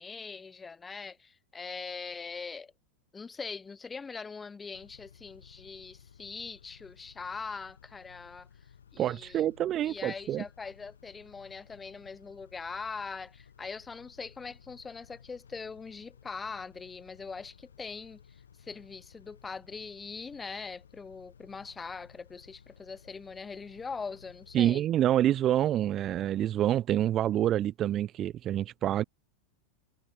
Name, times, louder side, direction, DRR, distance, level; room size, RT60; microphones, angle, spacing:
voice 1, 0.0-2.7 3.1-8.5 8.9-9.4 9.8-18.2 18.6-24.8, left 5 dB, 15° left, 0.8 m, -42 dB
Car / Idling / Accelerating revving vroom, 4.7-24.6, left 7 dB, 85° left, 6.3 m, -57 dB
voice 2, 9.0-10.4 24.5-29.0, right 12 dB, 35° right, 0.3 m, -27 dB
hypercardioid pair, 100°, 0 cm